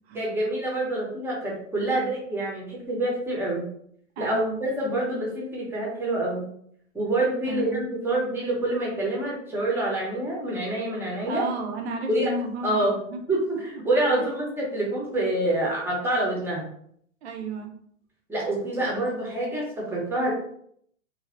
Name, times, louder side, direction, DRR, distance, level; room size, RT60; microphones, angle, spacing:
voice 1, 0.1-3.7 4.2-6.5 6.9-11.4 12.1-12.3 12.6-13.0 13.3-16.6 18.3-20.3, right 1 dB, 5° right, -4 dB, 0.8 m, -26 dB
voice 2, 4.2-4.6 7.4-7.8 11.3-13.2 13.7-13.8 14.2-14.3 17.2-17.7, right 3 dB, 55° right, 4 dB, 0.7 m, -33 dB
3.1 x 2.3 x 2.5 m, 0.66 s
hypercardioid pair, 110°, 40 cm